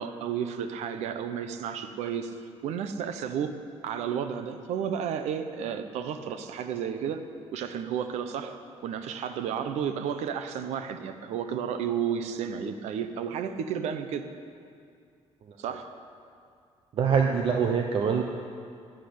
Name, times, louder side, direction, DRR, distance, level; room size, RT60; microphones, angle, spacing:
voice 1, 0.0-2.3 2.6-3.5 3.8-7.2 7.5-14.2 15.6-16.0, right 8 dB, 80° right, 9 dB, 0.9 m, -32 dB
voice 2, 16.9-18.2, right 6 dB, 50° right, 3 dB, 0.9 m, -25 dB
11.5 x 10.0 x 8.6 m, 2.3 s
cardioid pair, 150°, 11 cm